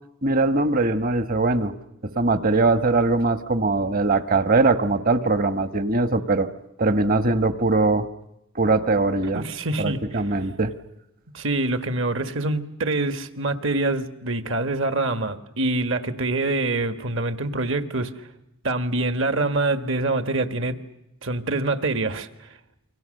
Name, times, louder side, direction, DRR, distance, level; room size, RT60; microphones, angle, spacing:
voice 1, 0.2-1.7 2.0-6.5 6.8-8.1 8.5-9.4 9.8-10.7, right 3 dB, 40° right, 11 dB, 1.2 m, -21 dB
voice 2, 9.3-10.2 11.3-18.3 18.6-20.8 21.2-22.5, right 2 dB, 60° right, 9 dB, 1.7 m, -25 dB
29.0 x 24.0 x 6.6 m, 0.89 s
head